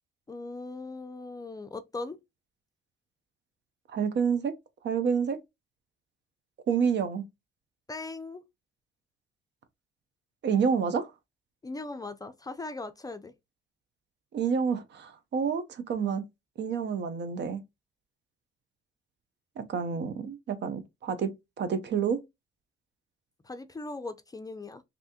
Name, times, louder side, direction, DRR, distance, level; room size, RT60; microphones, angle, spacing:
voice 1, 0.3-2.2 7.9-8.4 11.6-13.3 23.4-24.8, left 3 dB, 20° left, 0.4 m, -39 dB
voice 2, 3.9-4.5 4.8-5.4 6.7-7.2 10.4-11.1 14.3-16.2 16.6-17.6 19.6-21.3 21.6-22.2, right 6 dB, 60° right, 0.7 m, -28 dB
3.3 x 2.7 x 2.8 m
cardioid pair, 90°, 20 cm